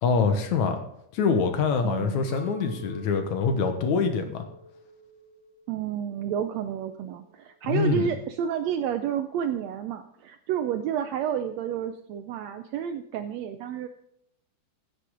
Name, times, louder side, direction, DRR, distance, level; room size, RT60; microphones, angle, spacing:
voice 1, 0.0-0.8 1.1-4.4 7.7-8.1, left 5 dB, 70° left, 6 dB, 2.5 m, -25 dB
voice 2, 1.8-2.2 5.7-13.9, right 9 dB, 80° right, 8 dB, 1.6 m, -30 dB
Chink clink, 2.3-6.6 6.9-7.7, equal, 50° right, 3.2 m, -48 dB
16.0 x 8.3 x 3.8 m, 0.72 s
omnidirectional pair, 3.6 m